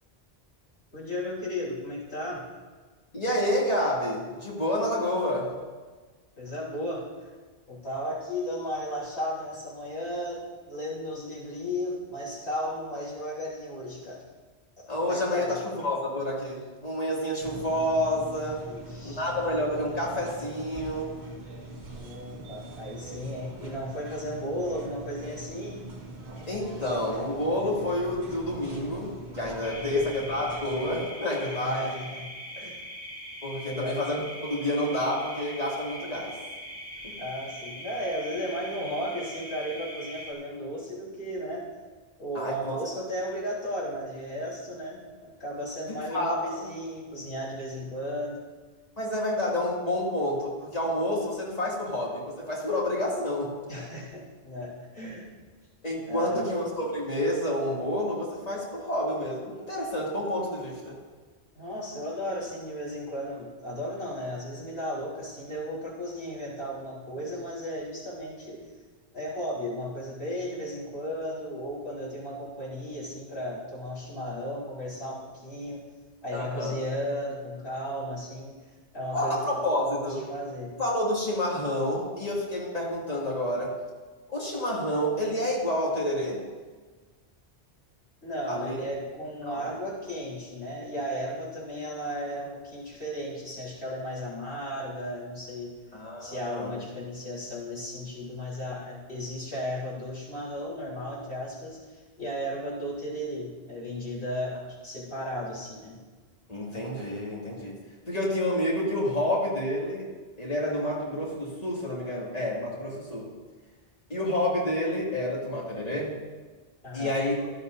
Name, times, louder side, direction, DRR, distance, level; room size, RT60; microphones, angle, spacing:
voice 1, 0.9-2.5 6.4-7.3 7.7-14.2 14.8-15.6 18.6-19.2 21.9-25.9 29.8-30.0 31.4-32.3 32.6-32.8 33.7-34.0 37.2-41.7 42.2-48.4 53.7-55.3 56.1-56.6 61.5-68.7 69.1-75.8 76.2-78.5 78.9-79.6 80.0-80.7 88.2-95.8 96.2-106.0 116.8-117.2, equal, 75° left, -6 dB, 4.5 m, -35 dB
voice 2, 3.1-5.5 14.9-18.7 19.0-21.1 26.5-31.9 33.4-34.2 34.5-36.3 37.0-37.1 42.3-42.8 46.1-46.4 49.0-53.5 55.8-61.0 76.3-76.7 79.1-80.2 80.8-83.8 84.3-86.4 88.5-88.8 89.5-89.7 95.9-96.7 106.5-107.8 108.1-110.1 110.4-113.3 114.1-116.2 116.9-117.4, left 1 dB, 35° left, -5 dB, 2.7 m, -29 dB
sound 1, 17.4-31.1, right 2 dB, 80° right, 2.2 m, -42 dB
sound 2, 29.6-40.3, equal, 15° right, 2.0 m, -41 dB
16.5 x 11.5 x 2.7 m, 1.4 s
omnidirectional pair, 1.1 m